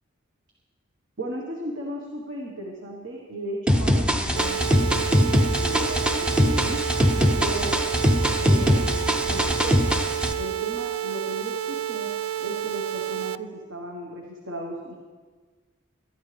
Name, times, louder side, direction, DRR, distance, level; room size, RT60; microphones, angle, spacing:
voice 1, 1.2-6.8 7.4-7.8 8.4-9.9 10.4-12.1 12.4-15.0, right 1 dB, 65° right, -1 dB, 1.5 m, -35 dB
sound 1, 3.7-10.3, equal, 5° right, 0.6 m, -22 dB
sound 2, 4.4-13.4, right 11 dB, 90° right, 0.3 m, -30 dB
19.5 x 12.0 x 3.5 m, 1.4 s
head